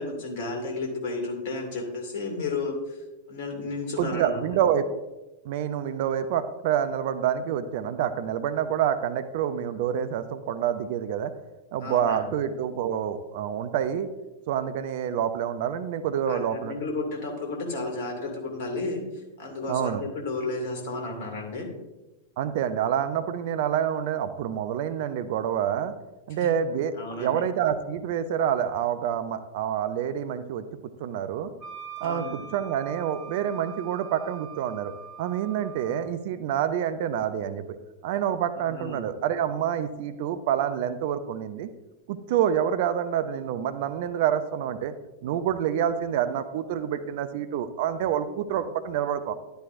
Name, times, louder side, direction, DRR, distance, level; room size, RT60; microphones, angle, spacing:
voice 1, 0.0-4.4 11.8-12.2 16.3-21.7 26.4-26.5 27.0-27.4 32.0-32.5 38.5-39.0, left 3 dB, 55° left, 2 dB, 2.5 m, -33 dB
voice 2, 4.0-4.9 5.4-11.3 11.7-14.1 14.5-16.7 19.7-20.0 22.4-25.9 26.3-30.6 31.0-31.5 32.0-32.2 32.5-34.9 35.2-37.8 38.0-41.7 42.1-44.9 45.2-49.3, right 9 dB, 50° right, 11 dB, 0.6 m, -27 dB
Wind instrument woodwind instrument, 31.6-36.1, right 7 dB, 35° right, 2.7 m, -43 dB
11.5 x 10.0 x 2.6 m, 1.1 s
figure-of-eight pair, 90°, 0 cm